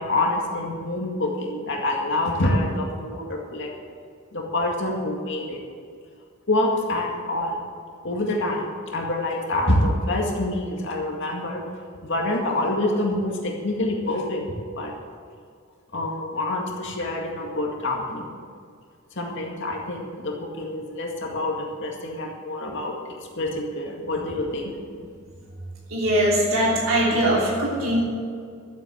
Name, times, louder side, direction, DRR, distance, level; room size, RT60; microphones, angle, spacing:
voice 1, 0.0-3.7 4.3-5.6 6.5-7.6 8.0-8.6 8.9-11.6 12.0-14.4 14.8-14.9 15.9-18.3 19.2-22.9 23.4-24.7, left 1 dB, 60° left, 0 dB, 2.1 m, -26 dB
voice 2, 25.9-28.0, right 1 dB, 80° right, -5 dB, 3.1 m, -21 dB
12.5 x 8.0 x 8.5 m, 2.2 s
head